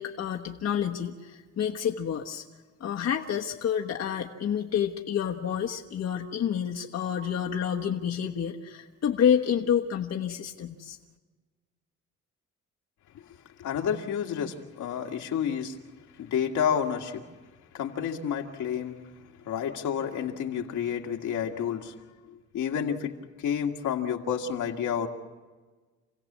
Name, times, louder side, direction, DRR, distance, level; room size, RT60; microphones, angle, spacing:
voice 1, 0.0-2.4 2.8-11.0, left 8 dB, 60° left, 1.3 m, -29 dB
voice 2, 13.6-15.7 16.2-17.2 17.7-19.0 19.5-21.9 22.5-23.2 23.4-25.1, left 8 dB, 80° left, 2.0 m, -30 dB
28.5 x 16.5 x 7.4 m
cardioid pair, 90°, 30 cm